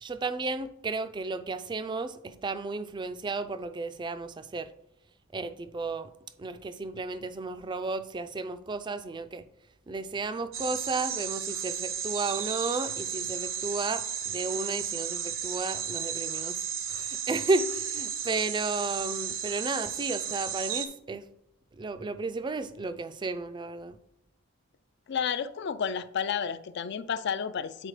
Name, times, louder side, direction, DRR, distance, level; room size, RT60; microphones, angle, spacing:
voice 1, 0.0-4.7 5.3-6.1 6.4-9.4 9.9-16.6 16.9-21.3 21.7-24.0, right 3 dB, 20° right, 11 dB, 0.3 m, -33 dB
sound 1, 10.5-20.9, right 8 dB, 70° right, 0.8 m, -34 dB
voice 2, 25.1-27.9, left 7 dB, 55° left, 13 dB, 0.4 m, -31 dB
9.0 x 4.2 x 3.2 m, 0.82 s
head